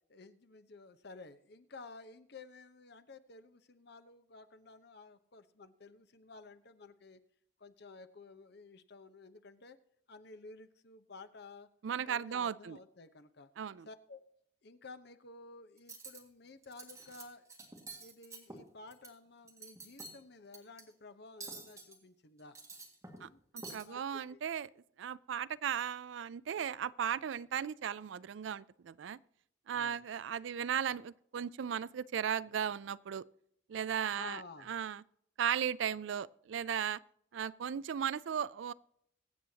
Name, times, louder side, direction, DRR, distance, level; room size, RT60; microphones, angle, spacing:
voice 1, 0.1-7.2 7.6-9.8 10.1-11.7 12.0-13.5 13.9-14.2 14.6-17.5 18.0-22.6 23.2-23.4 23.8-24.4 29.7-30.0 34.1-34.7, left 3 dB, 60° left, 0.9 m, -53 dB
voice 2, 11.8-12.8 13.6-13.9 23.2-23.3 23.5-24.7 25.0-29.2 29.7-33.2 33.7-34.4 34.7-35.0 35.4-37.0 37.3-38.7, right 8 dB, 75° right, 0.4 m, -36 dB
Cutlery silverware, 15.8-16.2 16.6-17.2 17.5-19.1 19.4-20.2 20.5-20.8 21.4-22.0 22.4-23.3 23.6-23.8, right 3 dB, 15° right, 1.9 m, -48 dB
23.0 x 7.7 x 2.8 m
head